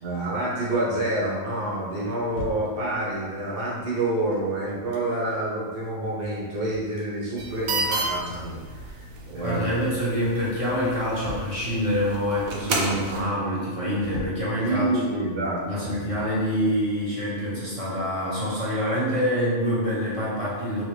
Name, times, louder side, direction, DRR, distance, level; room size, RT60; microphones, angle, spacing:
voice 1, 0.0-9.8 14.6-16.2, right 1 dB, 50° right, -6 dB, 1.0 m, -28 dB
sound 1, 2.0-3.4 4.1-5.5 5.8-5.9 6.2-7.8 8.2-9.4 9.7-10.2 10.7-12.2 12.6-12.7 13.0-13.5 13.9-15.2 15.4-17.3 17.6-17.7, left 2 dB, 90° left, 1.1 m, -43 dB
sound 2, 7.4-13.2, right 2 dB, 90° right, 1.0 m, -32 dB
voice 2, 9.4-15.2 15.6-20.8, equal, 30° right, -9 dB, 0.7 m, -26 dB
3.0 x 2.9 x 3.2 m, 1.6 s
omnidirectional pair, 1.4 m